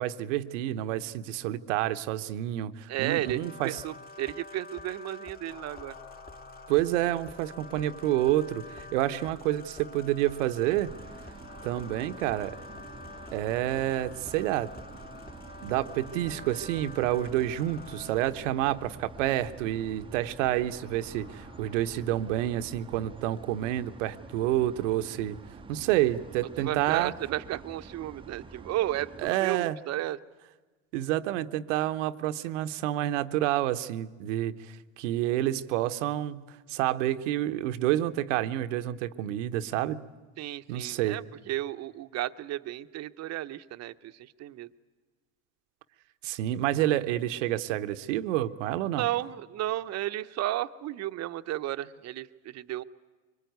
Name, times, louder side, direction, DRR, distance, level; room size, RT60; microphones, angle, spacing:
voice 1, 0.0-3.8 6.7-10.9 11.6-12.6 13.3-14.7 15.6-25.4 25.7-27.1 29.2-29.8 30.9-34.6 35.0-40.1 40.7-41.2 46.2-49.1, right 13 dB, 80° right, 11 dB, 1.0 m, -29 dB
voice 2, 2.9-6.0 26.6-30.2 40.4-44.7 49.0-52.8, right 14 dB, 45° right, 12 dB, 0.8 m, -33 dB
sound 1, 3.2-18.3, left 3 dB, 25° left, 1.7 m, -47 dB
sound 2, 5.5-23.1, left 1 dB, 75° left, 2.8 m, -54 dB
sound 3, 10.9-29.3, right 4 dB, 15° right, 0.7 m, -48 dB
23.5 x 21.0 x 9.4 m, 1.3 s
supercardioid pair, 105°, 36 cm